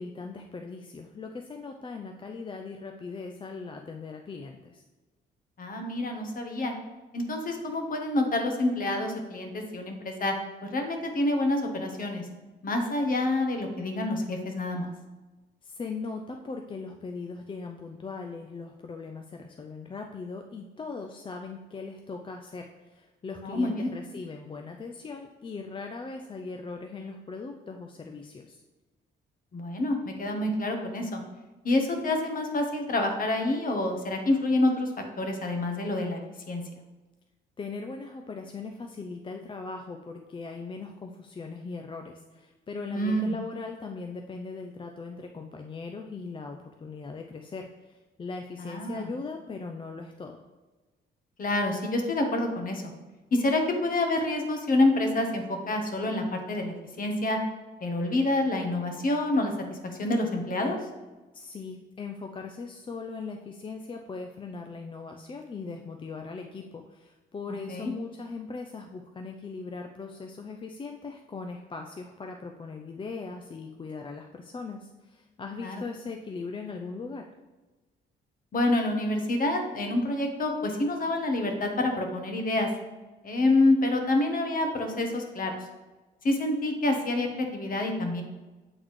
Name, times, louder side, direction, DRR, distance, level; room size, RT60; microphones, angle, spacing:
voice 1, 0.0-4.8 15.6-28.6 37.6-50.4 61.3-77.3, left 4 dB, 25° left, 3 dB, 0.4 m, -39 dB
voice 2, 5.6-6.7 7.1-10.3 10.6-12.3 12.6-14.9 23.4-23.9 29.5-31.2 31.6-34.9 35.2-36.2 36.5-36.6 42.9-43.3 48.6-49.1 51.4-52.8 53.3-57.4 57.8-60.8 67.7-67.9 75.6-75.8 78.5-82.7 83.2-85.5 86.2-88.2, left 2 dB, 45° left, 4 dB, 1.1 m, -27 dB
7.9 x 3.9 x 3.2 m, 1.2 s
cardioid pair, 90°, 20 cm